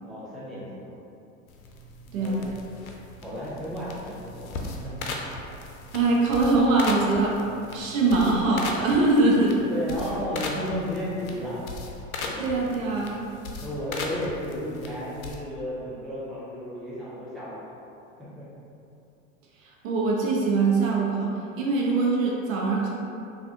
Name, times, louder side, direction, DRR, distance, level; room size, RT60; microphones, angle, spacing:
voice 1, 0.0-0.9 2.0-2.4 3.2-5.1 9.7-11.6 12.2-12.4 13.6-17.6 18.4-18.5, equal, ahead, -8 dB, 0.4 m, -33 dB
sound 1, 1.5-15.4, left 3 dB, 80° left, 0.5 m, -38 dB
voice 2, 5.9-7.3 7.7-9.5 12.4-13.1 19.8-22.9, right 3 dB, 70° right, -3 dB, 0.8 m, -22 dB
3.4 x 2.4 x 2.6 m, 2.7 s
hypercardioid pair, 90°, 42 cm